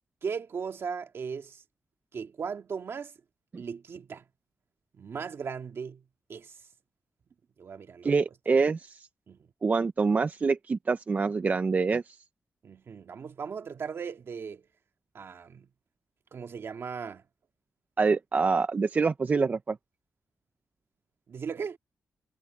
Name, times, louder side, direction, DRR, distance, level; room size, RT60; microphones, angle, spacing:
voice 1, 0.2-1.6 2.1-3.1 3.6-4.2 4.9-6.0 6.3-6.5 7.6-8.1 9.3-9.5 12.6-14.6 15.1-15.7 16.3-17.2 21.3-21.8, right 6 dB, 55° right, 1.9 m, -37 dB
voice 2, 8.0-9.1 9.6-12.2 18.0-19.8, right 4 dB, 35° right, 0.5 m, -26 dB
wide cardioid pair, 150°, 5 cm